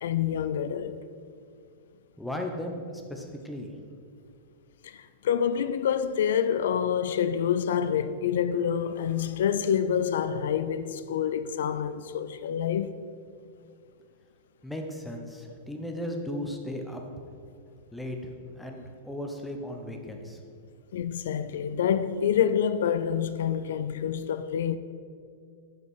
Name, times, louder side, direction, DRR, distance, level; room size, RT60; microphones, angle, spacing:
voice 1, 0.0-1.0 4.8-13.0 20.9-24.8, left 8 dB, 75° left, 0.3 m, -27 dB
voice 2, 2.2-3.7 14.6-17.0 17.9-18.2 18.5-20.4, left 1 dB, 5° left, 0.9 m, -36 dB
7.7 x 5.4 x 5.5 m
hypercardioid pair, 140°, 0 cm